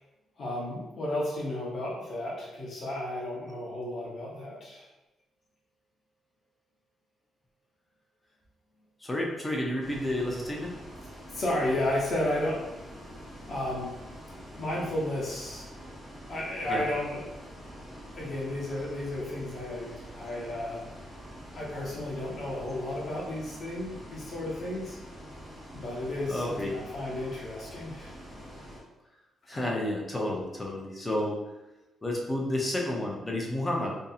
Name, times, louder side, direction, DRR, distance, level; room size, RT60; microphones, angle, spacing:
voice 1, 0.4-4.9 11.3-12.8 13.5-13.9 14.5-15.7 16.3-17.2 18.1-20.8 21.5-25.0 25.7-28.1, left 1 dB, 45° left, -4 dB, 0.8 m, -33 dB
voice 2, 9.0-10.8 16.7-16.8 26.3-26.8 29.5-31.4 32.0-34.0, left 1 dB, 15° left, -1 dB, 0.4 m, -31 dB
Bus, 9.8-28.8, equal, ahead, 0.8 m, -46 dB
2.6 x 2.6 x 2.3 m, 0.99 s
cardioid pair, 150°, 0 cm